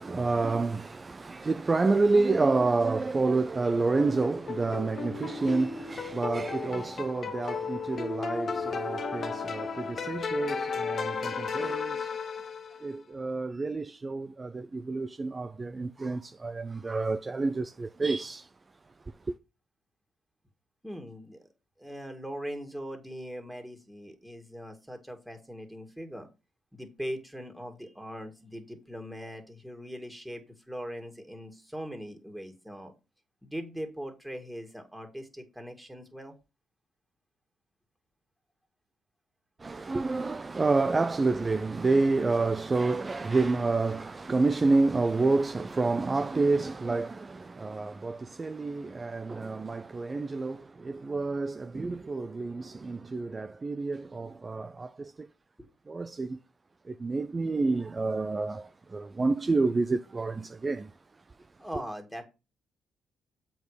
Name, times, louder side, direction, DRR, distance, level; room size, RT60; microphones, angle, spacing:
voice 1, 0.0-12.2 12.8-18.5 39.6-55.3 55.9-56.4 56.9-60.9, right 3 dB, 30° right, 0.5 m, -29 dB
sound 1, 4.0-12.9, left 5 dB, 50° left, 1.0 m, -34 dB
voice 2, 20.8-21.5 21.8-26.3 26.7-32.9 33.4-36.3 55.6-55.7 61.6-62.2, equal, 5° right, 2.3 m, -40 dB
7.4 x 4.7 x 5.0 m
hypercardioid pair, 50°, 0 cm